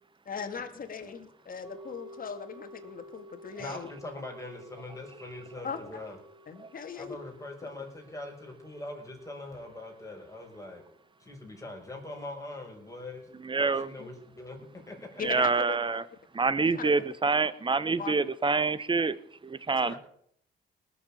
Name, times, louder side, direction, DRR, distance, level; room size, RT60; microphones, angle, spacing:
voice 1, 0.3-3.9 5.6-6.0 6.5-7.2 14.0-14.1 15.2-16.0 16.6-16.9 18.0-18.1 19.7-20.0, left 6 dB, 45° left, 2.4 m, -39 dB
sound 1, 1.6-11.9 12.2-12.3, left 1 dB, ahead, 5.6 m, -53 dB
voice 2, 3.6-6.2 7.0-10.8 11.2-13.3 13.6-15.2 19.9-20.0, left 2 dB, 15° left, 5.8 m, -42 dB
voice 3, 13.4-13.9 15.2-16.0 16.3-19.9, right 4 dB, 25° right, 1.1 m, -27 dB
19.0 x 7.5 x 8.6 m
cardioid pair, 90°, 20 cm